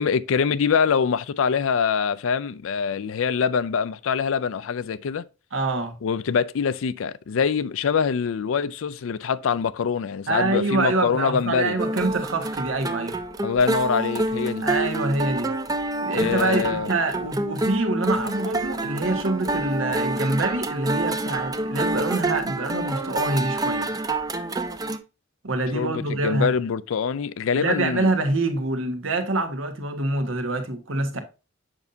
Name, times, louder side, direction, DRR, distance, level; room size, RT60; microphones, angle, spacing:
voice 1, 0.0-5.2 6.0-11.8 13.4-14.7 16.1-16.9 25.7-28.1, left 6 dB, 70° left, 0.4 m, -24 dB
voice 2, 5.5-6.0 10.3-13.2 14.6-15.5 16.0-23.9 25.4-26.5 27.5-31.2, right 2 dB, 70° right, 1.3 m, -25 dB
sound 1, 11.8-25.0, right 2 dB, 20° right, 0.5 m, -27 dB
7.2 x 5.5 x 2.7 m
head